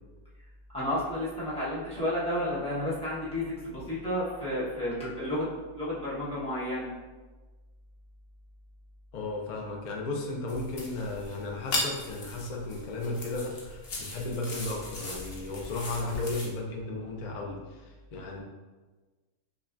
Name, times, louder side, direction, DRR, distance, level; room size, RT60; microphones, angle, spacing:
voice 1, 0.7-6.9, left 1 dB, 5° left, -9 dB, 0.9 m, -31 dB
voice 2, 9.1-18.4, left 2 dB, 70° left, -1 dB, 0.4 m, -35 dB
sound 1, 10.5-16.5, left 2 dB, 50° left, 0.8 m, -37 dB
5.5 x 2.2 x 2.5 m, 1.3 s
omnidirectional pair, 1.5 m